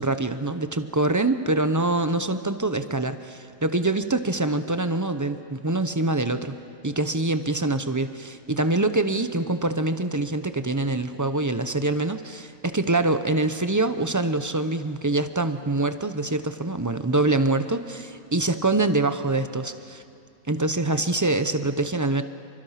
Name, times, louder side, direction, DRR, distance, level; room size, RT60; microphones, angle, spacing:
voice 1, 0.0-6.5 6.8-20.0 20.5-22.2, right 2 dB, 20° right, 10 dB, 0.5 m, -25 dB
29.0 x 24.5 x 5.8 m, 2.5 s
omnidirectional pair, 1.5 m